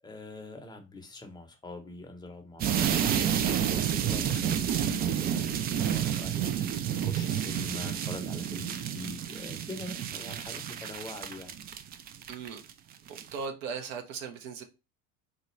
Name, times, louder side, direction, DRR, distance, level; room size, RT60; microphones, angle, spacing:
voice 1, 0.0-11.5, left 2 dB, 10° left, 0.9 m, -43 dB
sound 1, 2.6-12.7 13.1-13.4, right 9 dB, 25° right, 0.3 m, -30 dB
voice 2, 12.3-12.6 13.3-14.6, right 5 dB, 55° right, 1.0 m, -37 dB
4.2 x 2.3 x 3.1 m
hypercardioid pair, 80°, 41 cm